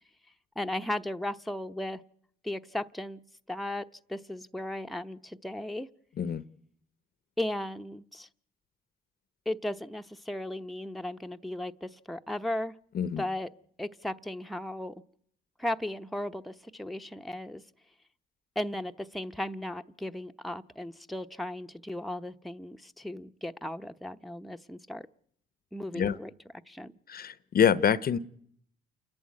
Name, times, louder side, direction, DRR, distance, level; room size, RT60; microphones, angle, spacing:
voice 1, 0.6-2.0 2.4-3.2 3.5-5.9 7.4-8.3 9.5-12.8 13.2-13.5 13.8-15.0 15.6-17.6 18.6-25.1 25.7-26.3 26.7-26.9, left 1 dB, ahead, 0.8 m, -36 dB
voice 2, 27.1-28.2, left 8 dB, 50° left, 0.8 m, -26 dB
28.5 x 11.5 x 9.6 m
cardioid pair, 90°, 20 cm